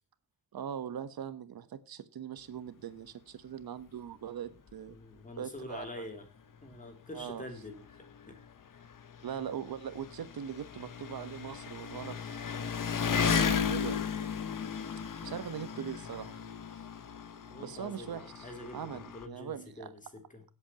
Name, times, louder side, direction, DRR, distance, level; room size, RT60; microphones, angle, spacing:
voice 1, 0.5-5.0 5.4-6.1 7.1-7.4 9.2-14.0 15.2-16.4 16.7-16.8 17.6-18.5 18.7-19.9, right 8 dB, 90° right, 12 dB, 1.3 m, -41 dB
Engine, 4.7-4.8 5.2-5.3 6.2-6.3 6.5-19.3, left 7 dB, 65° left, 1.3 m, -35 dB
voice 2, 4.9-6.3 6.6-8.4 8.7-8.9 17.5-20.4, left 1 dB, 20° left, 5 dB, 2.9 m, -46 dB
24.0 x 8.1 x 2.9 m, 0.31 s
wide cardioid pair, 180°, 35 cm